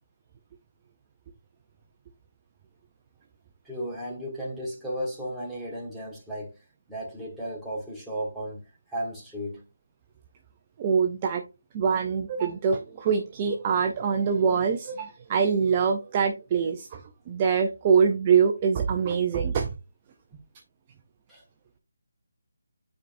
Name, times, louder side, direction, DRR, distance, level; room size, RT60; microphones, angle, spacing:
voice 1, 3.6-6.5 6.9-8.6 8.9-9.6 20.3-20.4 21.3-21.4, equal, ahead, 1.2 m, -34 dB
voice 2, 10.8-11.4 11.7-17.0 17.3-19.7, right 6 dB, 20° right, 0.4 m, -24 dB
9.5 x 4.5 x 2.6 m
figure-of-eight pair, 175°, 0 cm